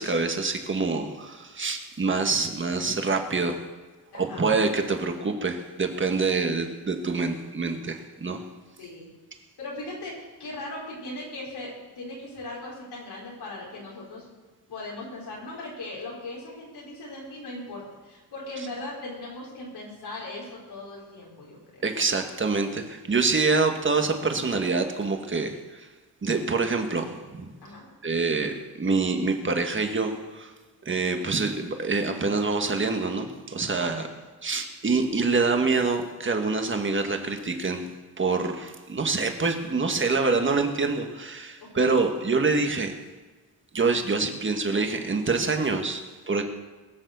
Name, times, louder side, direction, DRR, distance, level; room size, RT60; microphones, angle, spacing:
voice 1, 0.0-3.6 4.1-8.4 21.8-25.9 26.2-27.5 28.0-30.5 30.9-34.1 34.4-37.9 38.2-42.9 43.7-46.4, right 4 dB, 30° right, 5 dB, 1.6 m, -26 dB
voice 2, 4.1-4.5 8.8-9.1 9.6-14.3 14.7-21.8 27.6-27.8 33.8-34.1 41.7-41.9, left 2 dB, 90° left, -5 dB, 5.1 m, -39 dB
21.5 x 7.3 x 6.9 m, 1.3 s
wide cardioid pair, 130°, 38 cm